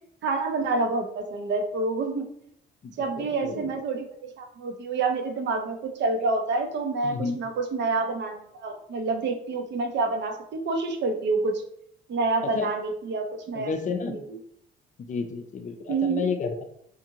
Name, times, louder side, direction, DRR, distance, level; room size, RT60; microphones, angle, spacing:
voice 1, 0.2-2.3 3.0-11.6 12.1-13.7 14.1-14.4 15.9-16.2, right 3 dB, 65° right, 5 dB, 0.6 m, -28 dB
voice 2, 2.8-3.7 7.0-7.4 12.5-12.7 13.5-14.2 15.0-16.6, left 5 dB, 40° left, 6 dB, 0.5 m, -31 dB
2.6 x 2.5 x 2.8 m, 0.72 s
cardioid pair, 90°, 20 cm